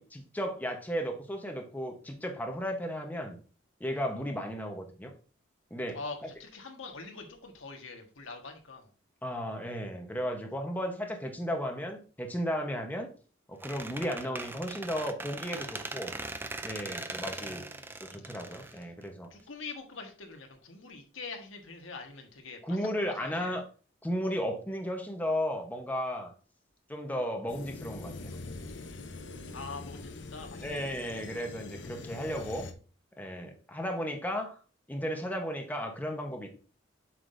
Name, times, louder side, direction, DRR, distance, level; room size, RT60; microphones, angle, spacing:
voice 1, 0.0-3.4 3.8-5.1 5.7-6.0 9.2-13.1 13.5-16.1 16.6-17.7 18.0-19.3 22.6-23.6 24.0-26.3 26.9-28.4 30.6-32.7 33.2-34.6 34.9-36.5, equal, 10° left, 3 dB, 1.0 m, -34 dB
voice 2, 5.9-8.9 17.3-18.7 19.3-22.8 23.1-23.6 29.5-30.9, left 4 dB, 90° left, 3 dB, 1.4 m, -44 dB
Squeak, 13.6-19.4, right 2 dB, 10° right, 0.4 m, -40 dB
sound 1, 27.5-32.7, left 3 dB, 65° left, 0.8 m, -43 dB
8.0 x 6.0 x 2.6 m, 0.37 s
head